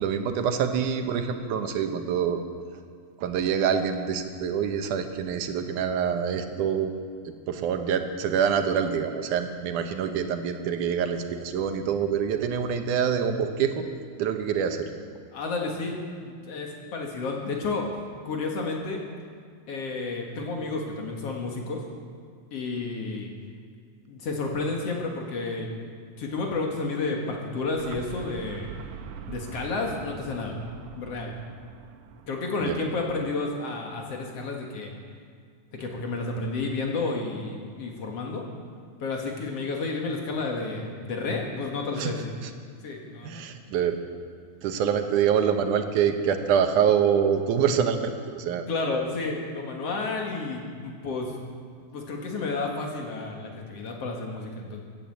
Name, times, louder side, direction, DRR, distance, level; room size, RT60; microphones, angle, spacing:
voice 1, 0.0-2.4 3.2-6.9 7.3-13.9 14.2-14.9 32.6-32.8 42.0-42.1 42.4-42.5 43.2-44.0 44.6-48.7, right 7 dB, 85° right, 6 dB, 2.5 m, -25 dB
voice 2, 15.3-17.9 18.2-19.0 19.7-21.8 22.5-23.3 24.1-25.8 26.2-28.7 29.3-30.6 30.9-31.3 32.3-34.9 35.8-38.4 39.0-42.3 42.8-43.4 48.7-51.3 51.8-54.8, left 3 dB, 55° left, 1 dB, 2.6 m, -31 dB
sound 1, 27.5-33.3, right 6 dB, 70° right, 2.0 m, -43 dB
16.5 x 10.0 x 7.7 m, 2.2 s
omnidirectional pair, 3.5 m